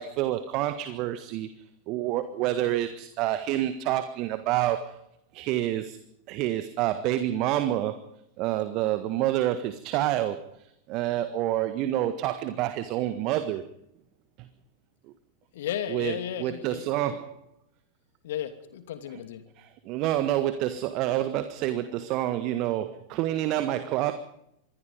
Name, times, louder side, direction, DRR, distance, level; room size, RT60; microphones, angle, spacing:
voice 1, 0.0-1.5 1.9-5.0 5.3-6.0 6.3-8.0 8.4-13.6 14.4-14.5 15.9-17.3 19.6-24.1, right 13 dB, 40° right, 11 dB, 1.5 m, -28 dB
voice 2, 15.5-17.2 18.2-19.4, left 10 dB, 55° left, 10 dB, 2.8 m, -34 dB
27.0 x 21.0 x 5.3 m, 0.77 s
figure-of-eight pair, 90°, 0 cm